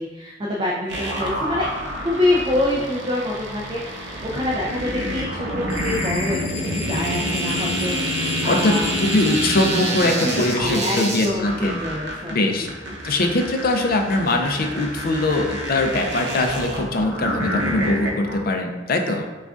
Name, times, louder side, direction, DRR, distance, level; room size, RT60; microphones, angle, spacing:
voice 1, 0.0-1.7 2.0-6.4 6.7-8.9 10.0-12.6 12.9-13.2, left 1 dB, 25° right, -4 dB, 0.4 m, -26 dB
sound 1, 0.9-18.4, equal, 70° right, 0.8 m, -27 dB
sound 2, 5.7-9.7, left 6 dB, 85° left, 0.7 m, -36 dB
voice 2, 8.5-11.8 12.3-12.7 13.0-19.3, left 2 dB, 55° left, 4 dB, 0.4 m, -22 dB
6.1 x 2.3 x 2.4 m, 1.3 s
head